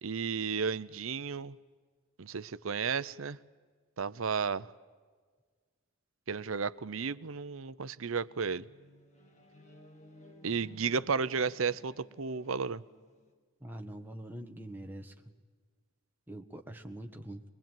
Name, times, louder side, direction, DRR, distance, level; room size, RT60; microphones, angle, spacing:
voice 1, 0.0-1.6 2.2-3.4 4.0-4.7 6.3-8.6 10.4-12.8, right 5 dB, 75° right, 16 dB, 0.7 m, -33 dB
sound 1, 8.2-13.3, left 1 dB, 35° left, 2.7 m, -57 dB
voice 2, 13.6-15.1 16.3-17.4, right 1 dB, 10° right, 3 dB, 1.5 m, -44 dB
22.5 x 22.0 x 9.1 m, 1.5 s
head